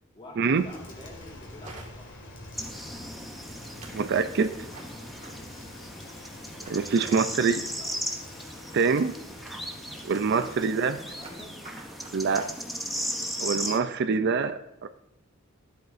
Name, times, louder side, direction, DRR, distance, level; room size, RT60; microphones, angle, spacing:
voice 1, 0.1-2.3 7.0-8.2 10.5-11.7, left 1 dB, 25° left, -1 dB, 1.9 m, -48 dB
Rain, 0.5-12.9, left 1 dB, 60° left, 2.2 m, -47 dB
sound 1, 1.6-2.2 2.5-2.9 3.5-4.1 4.7-5.8 6.5-7.8 8.7-12.7, right 2 dB, 35° right, 1.8 m, -49 dB
sound 2, 2.5-13.8, equal, ahead, 0.7 m, -37 dB
voice 2, 3.9-4.5 6.7-7.6 8.7-9.1 10.0-11.0 12.1-12.5 13.4-14.9, right 5 dB, 55° right, 10 dB, 0.4 m, -25 dB
13.0 x 7.8 x 2.6 m, 0.88 s
head